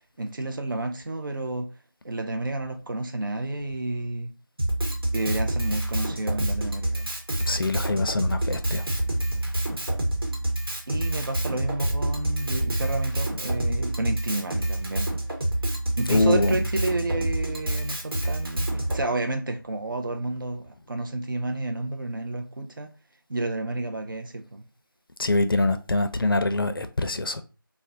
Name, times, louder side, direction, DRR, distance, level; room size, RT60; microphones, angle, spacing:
voice 1, 0.2-1.7 2.0-4.3 5.1-7.1 10.9-15.1 16.0-22.9 23.3-24.6, right 2 dB, 65° right, 0.4 m, -30 dB
Drum kit, 4.6-19.0, right 1 dB, 85° right, 1.0 m, -27 dB
voice 2, 7.5-8.9 16.1-16.7 25.2-27.4, left 2 dB, 70° left, 0.4 m, -24 dB
2.4 x 2.0 x 2.7 m
figure-of-eight pair, 180°, 12 cm